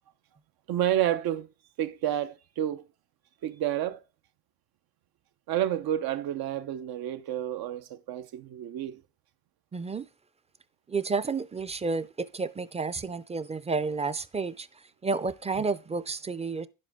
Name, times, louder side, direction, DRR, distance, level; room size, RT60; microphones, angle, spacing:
voice 1, 0.7-1.5 1.8-2.8 3.4-4.0 5.5-9.0, right 11 dB, 80° right, 0.8 m, -30 dB
voice 2, 9.7-10.1 10.9-16.7, right 4 dB, 20° right, 0.4 m, -31 dB
10.5 x 7.6 x 3.6 m
cardioid pair, 135°, 36 cm